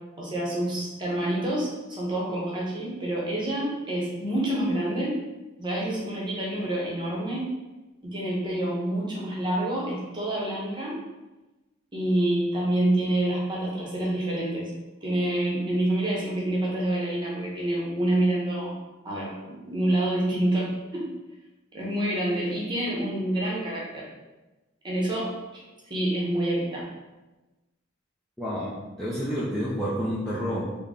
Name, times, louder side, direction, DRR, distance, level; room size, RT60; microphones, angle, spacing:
voice 1, 0.2-5.2 5.6-7.5 8.0-11.0 11.9-14.7 15.0-18.8 19.0-21.1 21.7-24.1 24.8-26.9, right 1 dB, 25° right, -4 dB, 0.8 m, -27 dB
voice 2, 28.4-30.6, equal, ahead, -9 dB, 0.4 m, -29 dB
3.8 x 2.1 x 3.5 m, 1.1 s
head